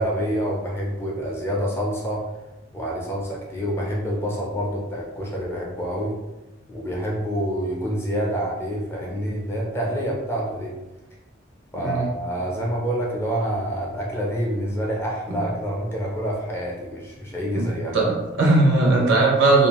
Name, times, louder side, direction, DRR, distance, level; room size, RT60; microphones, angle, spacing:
voice 1, 0.0-2.2 2.7-6.1 6.7-10.7 11.7-18.0, equal, 10° left, -3 dB, 0.4 m, -27 dB
voice 2, 11.7-12.1 15.3-15.4 17.5-17.7 17.9-19.7, right 2 dB, 75° right, -2 dB, 0.7 m, -19 dB
2.5 x 2.3 x 2.9 m, 1.0 s
head